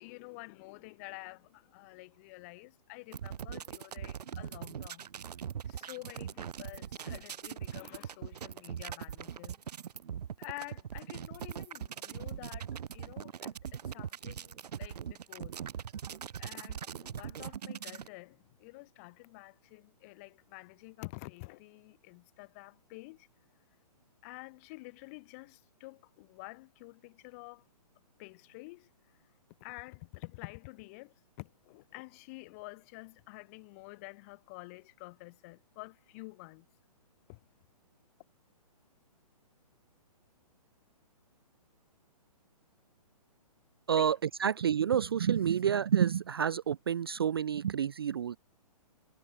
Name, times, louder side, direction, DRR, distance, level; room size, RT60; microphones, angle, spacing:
voice 1, 0.0-5.1 5.6-9.5 10.4-15.5 16.4-23.3 24.2-27.6 28.2-28.9 29.6-36.7 37.3-37.4 44.0-44.1, left 27 dB, 20° left, 2.9 m, -49 dB
sound 1, 3.1-18.1, right 8 dB, 80° right, 0.7 m, -41 dB
voice 2, 43.9-48.4, right 8 dB, 40° right, 0.4 m, -29 dB
hypercardioid pair, 170°, 20 cm